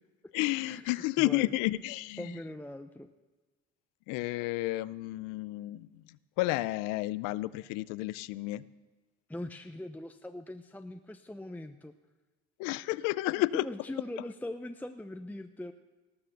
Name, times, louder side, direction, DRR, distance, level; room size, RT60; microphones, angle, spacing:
voice 1, 0.3-2.3 4.1-5.9 6.4-8.6 12.6-13.7, left 19 dB, 85° left, 19 dB, 0.5 m, -31 dB
voice 2, 1.2-1.5 2.2-3.1 9.3-11.9 13.5-15.7, left 1 dB, 5° left, 8 dB, 0.7 m, -41 dB
18.5 x 6.7 x 6.6 m, 1.3 s
supercardioid pair, 80°, 31 cm